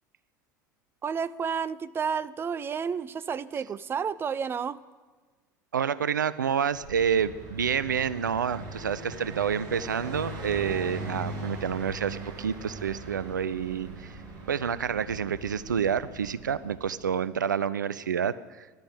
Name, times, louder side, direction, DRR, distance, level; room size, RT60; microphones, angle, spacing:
voice 1, 1.0-4.8, right 6 dB, 25° right, 18 dB, 0.5 m, -31 dB
voice 2, 5.7-14.2 14.5-18.8, right 7 dB, 75° right, 18 dB, 0.5 m, -28 dB
Car passing by, 6.7-17.2, right 1 dB, 45° right, 5.0 m, -40 dB
12.0 x 12.0 x 8.9 m, 1.4 s
figure-of-eight pair, 70°, 10 cm